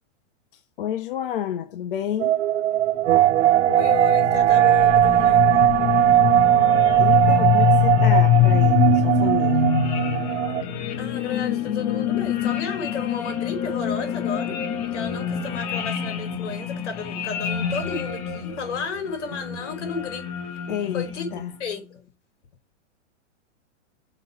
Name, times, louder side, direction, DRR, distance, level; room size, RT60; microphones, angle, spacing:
voice 1, 0.5-2.3 7.0-9.7 20.7-21.5, left 9 dB, 50° left, 1.0 m, -30 dB
sound 1, 2.2-10.6, right 13 dB, 70° right, 0.6 m, -19 dB
sound 2, 3.2-21.5, left 10 dB, 20° left, 0.7 m, -25 dB
voice 2, 3.6-5.4 11.0-14.6 14.9-20.3 20.9-21.3 21.6-22.0, left 5 dB, 70° left, 4.1 m, -32 dB
6.2 x 5.6 x 4.9 m
supercardioid pair, 175°, 36 cm